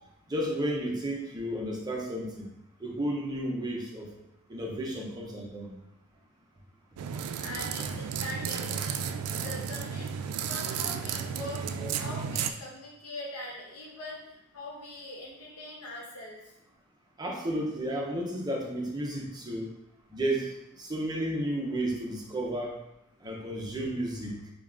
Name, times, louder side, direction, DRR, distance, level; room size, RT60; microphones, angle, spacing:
voice 1, 0.3-2.5 2.8-4.1 4.5-5.7 17.2-19.7 20.1-20.5 20.8-22.7 23.2-24.3, right 1 dB, 20° right, -1 dB, 0.6 m, -32 dB
sound 1, 7.0-12.5, right 7 dB, 90° right, 0.3 m, -33 dB
voice 2, 7.4-16.5, left 1 dB, 85° left, -3 dB, 1.1 m, -42 dB
6.7 x 2.3 x 2.5 m, 0.88 s
head